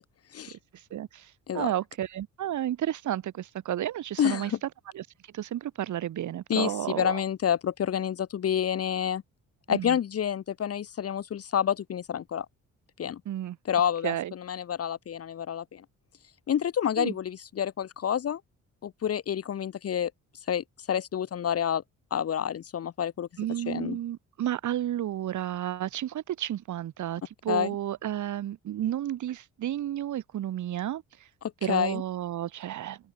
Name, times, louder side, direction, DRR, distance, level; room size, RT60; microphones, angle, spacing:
voice 1, 0.9-4.7 4.9-5.0 5.3-7.2 9.7-10.0 13.3-13.6 14.0-14.3 17.0-17.1 23.4-31.0 31.6-33.0, right 12 dB, 75° right, 5.8 m, -32 dB
voice 2, 4.2-4.6 6.5-9.2 9.7-12.5 13.0-13.2 13.7-15.8 16.5-18.4 18.8-20.1 20.5-21.8 22.1-23.3 23.6-24.0 27.5-27.7 31.4-32.0, left 9 dB, 50° left, 1.5 m, -28 dB
open air
cardioid pair, 90°, 30 cm